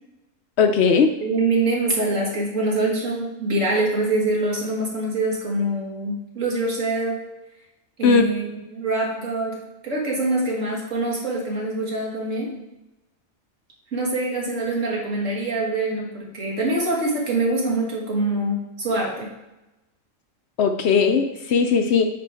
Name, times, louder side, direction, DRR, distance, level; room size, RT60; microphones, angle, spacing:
voice 1, 0.6-1.1 8.0-8.2 20.6-22.1, left 5 dB, 65° left, 7 dB, 0.8 m, -18 dB
voice 2, 1.2-7.2 8.0-8.4 8.7-9.6 9.8-12.5 13.9-19.3, right 2 dB, 70° right, -3 dB, 2.2 m, -24 dB
9.0 x 5.6 x 3.4 m, 0.98 s
omnidirectional pair, 1.4 m